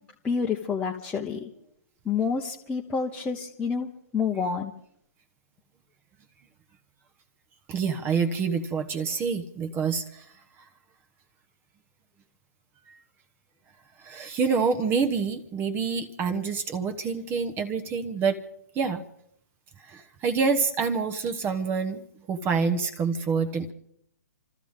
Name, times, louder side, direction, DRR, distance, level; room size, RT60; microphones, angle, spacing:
voice 1, 0.2-1.5 2.0-4.7, left 5 dB, 10° left, -2 dB, 1.0 m, -28 dB
voice 2, 7.7-10.2 14.0-18.4 18.8-19.0 19.9-22.0 22.3-23.7, right 5 dB, 20° right, 8 dB, 1.1 m, -27 dB
27.5 x 13.5 x 3.7 m, 0.70 s
figure-of-eight pair, 130°, 10 cm